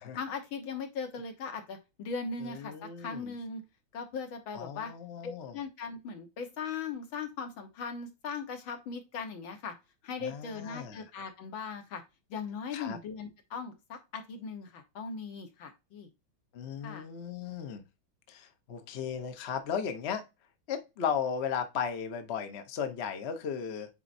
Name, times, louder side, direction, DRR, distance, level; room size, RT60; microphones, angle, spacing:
voice 1, 0.1-3.6 3.9-4.9 5.2-9.7 10.0-12.0 12.3-16.1 16.8-17.1, left 5 dB, 75° left, 2.0 m, -39 dB
voice 2, 2.4-3.3 4.5-5.5 10.2-11.0 12.7-13.0 16.5-17.8 18.3-20.2 20.7-23.9, left 7 dB, 50° left, 0.8 m, -36 dB
8.9 x 4.1 x 2.6 m
omnidirectional pair, 2.3 m